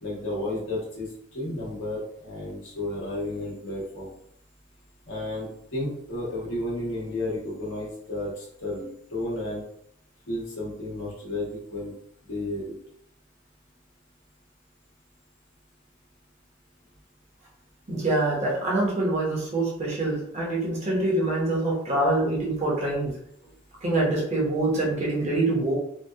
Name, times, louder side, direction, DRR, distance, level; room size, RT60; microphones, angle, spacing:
voice 1, 0.0-4.1 5.1-9.6 10.3-11.9 12.3-12.8, left 1 dB, 65° left, -5 dB, 1.1 m, -32 dB
voice 2, 17.9-23.1 23.8-25.7, right 2 dB, 35° right, -4 dB, 0.8 m, -25 dB
2.7 x 2.2 x 2.2 m, 0.70 s
head